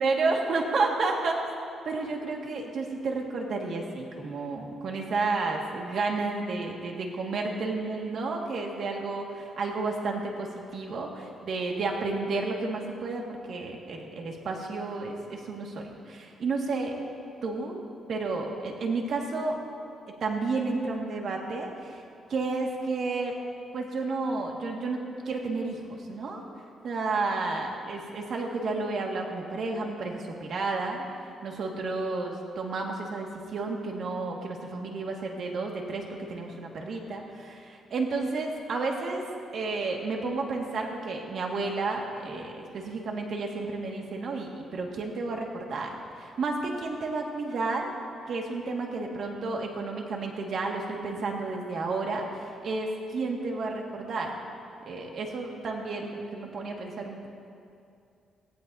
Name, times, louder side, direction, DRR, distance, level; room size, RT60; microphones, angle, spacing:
voice 1, 0.0-1.4 1.9-17.0 17.4-19.6 20.2-22.0 22.3-23.4 23.7-26.4 26.8-31.0 31.4-39.2 39.5-47.9 48.3-54.4 54.9-57.3, right 3 dB, 60° right, 0 dB, 1.9 m, -31 dB
17.5 x 16.0 x 2.8 m, 2.5 s
cardioid pair, 110°, 0 cm